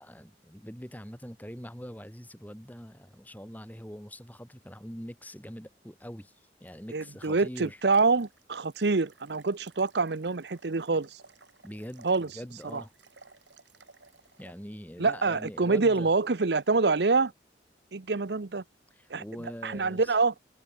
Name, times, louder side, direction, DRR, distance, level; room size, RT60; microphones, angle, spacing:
voice 1, 0.0-6.3 6.6-7.8 11.6-12.9 14.4-16.1 18.9-20.1, equal, 10° left, 6.8 m, -43 dB
sound 1, 6.7-14.5, right 4 dB, 85° right, 8.0 m, -58 dB
voice 2, 6.9-11.2 12.0-12.3 12.7-12.8 15.0-17.3 17.9-18.6 19.1-19.2 19.6-20.3, right 4 dB, 65° right, 0.8 m, -26 dB
head